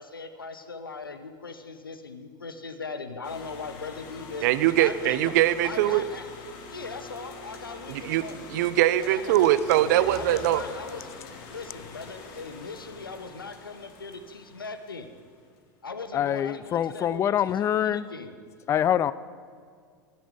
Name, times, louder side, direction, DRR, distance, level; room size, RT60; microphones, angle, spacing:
voice 1, 0.0-5.3 5.6-6.3 6.7-8.5 9.0-9.5 9.9-11.1 11.5-15.1 15.8-18.3, left 4 dB, 85° left, 9 dB, 1.0 m, -39 dB
sound 1, 3.2-15.3, left 4 dB, 50° left, 2.0 m, -44 dB
voice 2, 4.4-6.0 7.9-8.2 8.5-10.6, right 13 dB, 55° right, 15 dB, 0.6 m, -22 dB
voice 3, 16.1-18.1 18.7-19.1, left 10 dB, 25° left, 18 dB, 0.4 m, -25 dB
12.0 x 9.4 x 8.1 m, 2.1 s
figure-of-eight pair, 85°, 11 cm